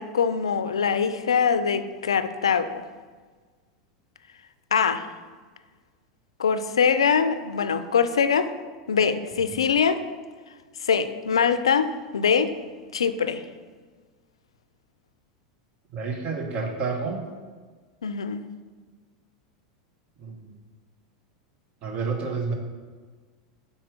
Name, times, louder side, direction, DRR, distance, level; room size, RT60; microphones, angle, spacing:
voice 1, 0.0-2.8 4.7-5.1 6.4-8.5 8.9-10.0 10.8-12.5 12.9-13.4 18.0-18.4, left 6 dB, 90° left, 11 dB, 0.3 m, -23 dB
voice 2, 15.9-17.2 20.2-20.4 21.8-22.5, right 4 dB, 45° right, 4 dB, 1.0 m, -29 dB
4.4 x 4.2 x 5.0 m, 1.5 s
hypercardioid pair, 95°, 3 cm